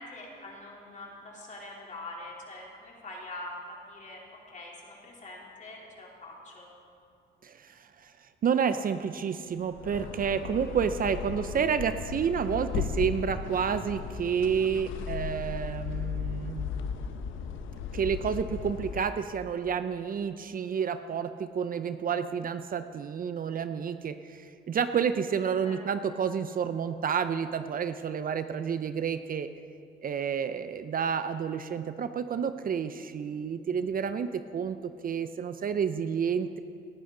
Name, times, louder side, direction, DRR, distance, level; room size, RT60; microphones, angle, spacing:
voice 1, 0.0-6.7 25.6-25.8, left 2 dB, 40° left, -3 dB, 3.3 m, -44 dB
voice 2, 7.4-8.1 8.4-16.7 17.9-29.5 30.0-36.6, right 7 dB, 45° right, 10 dB, 0.5 m, -30 dB
sound 1, 9.6-19.2, left 6 dB, 85° left, 0.8 m, -36 dB
18.0 x 11.5 x 3.9 m, 2.4 s
cardioid pair, 90°, 20 cm